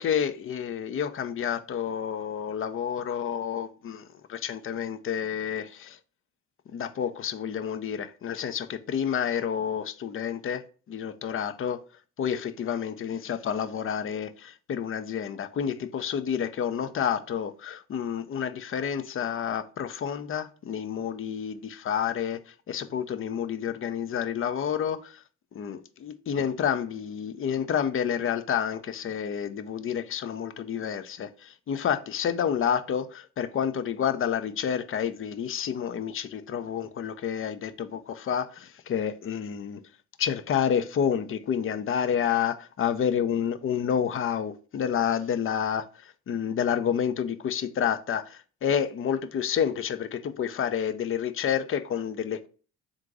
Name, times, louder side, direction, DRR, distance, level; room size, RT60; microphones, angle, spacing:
voice 1, 0.0-4.0 4.3-6.0 6.7-10.6 10.9-11.8 12.2-25.2 25.5-39.8 40.2-52.5, left 8 dB, 35° left, 0.5 m, -29 dB
3.6 x 2.6 x 4.7 m
hypercardioid pair, 60°, 38 cm